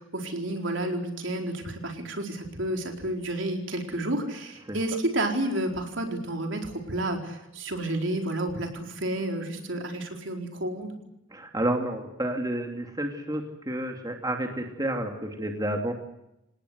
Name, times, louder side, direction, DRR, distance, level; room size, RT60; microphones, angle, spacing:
voice 1, 0.0-11.0, right 1 dB, 65° right, 3 dB, 4.4 m, -30 dB
voice 2, 11.3-15.9, right 1 dB, 20° right, 3 dB, 2.6 m, -30 dB
28.5 x 18.0 x 8.2 m, 0.88 s
head